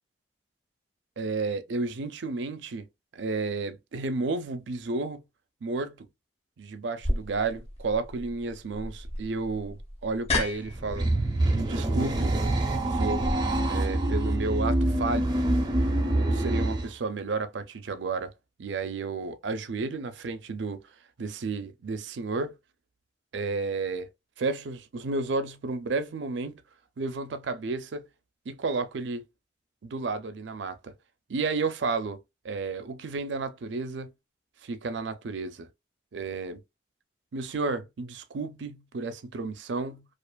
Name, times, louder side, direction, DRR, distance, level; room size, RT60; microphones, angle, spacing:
voice 1, 1.2-2.9 3.1-5.2 5.6-6.1 6.6-11.1 11.6-12.3 12.8-13.3 13.7-15.3 16.1-18.3 18.6-20.8 21.2-22.5 23.3-24.1 24.4-26.6 27.0-28.0 28.5-29.2 29.8-30.9 31.3-34.1 34.6-35.7 36.1-36.6 37.3-40.1, right 3 dB, 90° right, 0.5 m, -32 dB
sound 1, 7.0-13.3, left 2 dB, 35° left, 0.7 m, -34 dB
sound 2, 10.7-16.9, right 1 dB, 25° right, 0.6 m, -26 dB
2.4 x 2.4 x 2.2 m
head